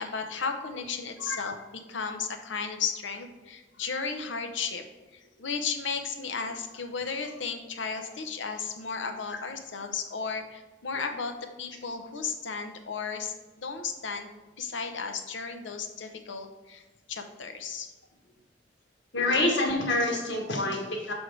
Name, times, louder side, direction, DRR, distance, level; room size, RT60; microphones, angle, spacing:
voice 1, 0.0-4.8 5.1-11.3 11.6-14.3 14.6-16.8 17.1-17.9, left 5 dB, 90° left, 6 dB, 0.7 m, -34 dB
voice 2, 1.2-1.5 19.1-21.1, left 2 dB, 70° left, 0 dB, 1.3 m, -27 dB
6.3 x 3.5 x 4.8 m, 1.1 s
head